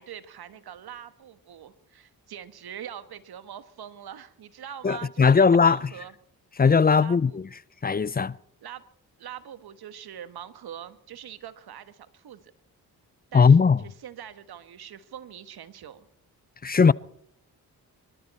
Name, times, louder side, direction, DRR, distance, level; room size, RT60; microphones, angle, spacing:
voice 1, 0.0-6.1 7.0-7.4 8.6-8.8 9.2-12.4 13.3-16.1, right 9 dB, 70° right, 1.4 m, -43 dB
voice 2, 4.8-5.9 6.6-7.5 7.8-8.4 13.3-13.8 16.6-16.9, left 5 dB, 25° left, 0.5 m, -19 dB
24.0 x 13.0 x 4.3 m
supercardioid pair, 50°, 39 cm